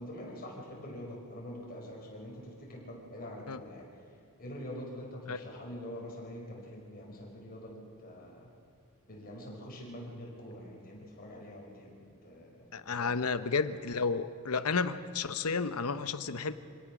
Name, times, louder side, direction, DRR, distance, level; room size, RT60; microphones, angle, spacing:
voice 1, 0.0-3.9 4.4-8.5 9.1-13.3, equal, 45° left, -2 dB, 5.0 m, -45 dB
voice 2, 12.7-16.5, left 4 dB, 80° left, 12 dB, 0.9 m, -32 dB
26.0 x 17.5 x 6.1 m, 2.6 s
head